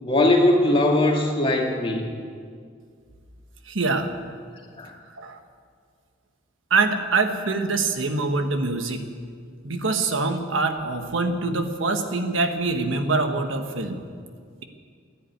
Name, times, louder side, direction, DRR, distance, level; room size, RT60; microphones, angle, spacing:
voice 1, 0.0-2.1 4.8-5.0, left 1 dB, 30° left, 0 dB, 2.2 m, -20 dB
voice 2, 3.7-4.1 5.2-5.4 6.7-9.1 9.6-14.0, right 3 dB, 75° right, 6 dB, 1.3 m, -24 dB
15.0 x 10.0 x 9.3 m, 2.1 s
head